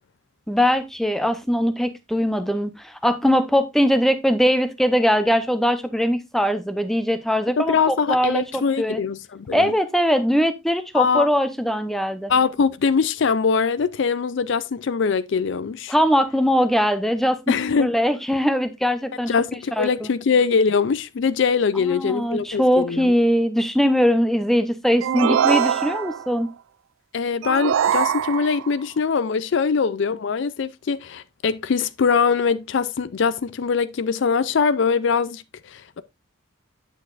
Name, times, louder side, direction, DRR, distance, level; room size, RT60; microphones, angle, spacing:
voice 1, 0.5-9.0 9.5-12.3 15.9-17.4 17.8-19.3 19.8-20.1 21.9-26.5, equal, ahead, 0.7 m, -21 dB
voice 2, 7.6-9.7 10.9-11.3 12.3-15.9 17.5-17.9 19.3-23.1 27.1-36.0, left 5 dB, 60° left, 0.4 m, -22 dB
sound 1, 25.0-26.3 27.4-28.7, right 8 dB, 70° right, 0.3 m, -22 dB
9.4 x 6.5 x 2.5 m
head